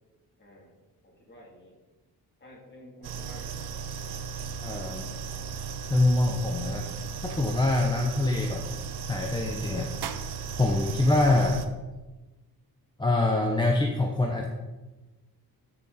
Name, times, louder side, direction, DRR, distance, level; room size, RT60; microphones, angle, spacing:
voice 1, 0.4-0.7 1.0-1.8 2.4-3.6, left 1 dB, 30° left, -3 dB, 2.8 m, -50 dB
sound 1, 3.0-11.7, right 6 dB, 80° right, 0.8 m, -36 dB
voice 2, 4.6-5.1 5.9-6.9 7.2-8.6 9.1-9.9 10.6-11.7 13.0-14.5, left 2 dB, 10° left, 1 dB, 0.6 m, -25 dB
13.0 x 5.9 x 4.1 m, 1.2 s
wide cardioid pair, 155°, 38 cm